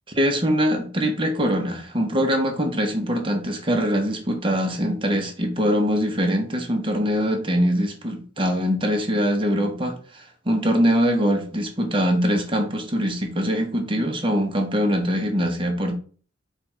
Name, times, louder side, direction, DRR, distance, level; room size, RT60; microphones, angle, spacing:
voice 1, 0.1-15.9, equal, 25° right, 2 dB, 0.9 m, -23 dB
4.6 x 2.4 x 4.4 m, 0.41 s
head